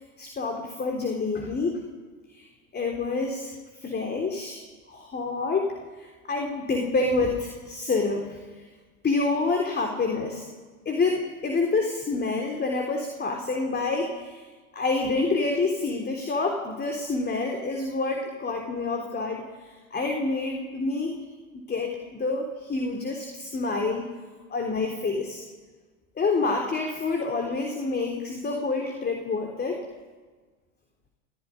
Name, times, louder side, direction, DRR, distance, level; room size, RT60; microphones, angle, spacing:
voice 1, 0.2-1.8 2.3-4.6 4.9-5.7 6.0-8.7 9.0-10.5 10.9-14.5 14.7-21.2 21.5-24.1 24.5-25.4 26.2-29.8, left 3 dB, 25° left, 3 dB, 3.7 m, -28 dB
29.0 x 15.5 x 9.9 m, 1.4 s
hypercardioid pair, 90°, 41 cm